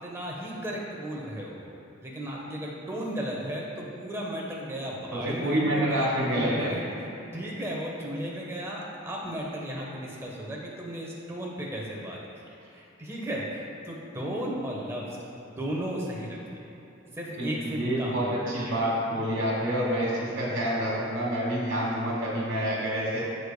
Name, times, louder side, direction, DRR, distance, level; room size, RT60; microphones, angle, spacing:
voice 1, 0.0-1.7 2.0-12.2 12.7-15.2 15.5-16.6 17.2-18.9, equal, 15° right, -3 dB, 1.1 m, -35 dB
voice 2, 5.1-6.7 17.4-23.2, equal, 70° right, -7 dB, 1.6 m, -28 dB
13.5 x 5.0 x 2.2 m, 2.9 s
head